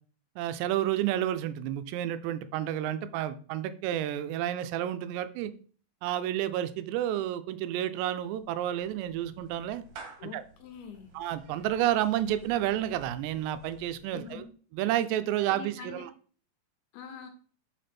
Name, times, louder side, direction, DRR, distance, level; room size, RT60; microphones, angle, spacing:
voice 1, 0.4-5.5 6.0-9.8 10.3-10.4 11.1-14.5 14.7-16.1, right 12 dB, 85° right, 11 dB, 2.7 m, -30 dB
Clapping / Meow, 8.1-14.5, right 3 dB, 70° right, 2.7 m, -52 dB
voice 2, 10.2-11.1 14.1-14.5 15.5-16.1 16.9-17.3, left 7 dB, 75° left, 5 dB, 2.7 m, -44 dB
5.9 x 5.1 x 4.3 m, 0.43 s
omnidirectional pair, 5.0 m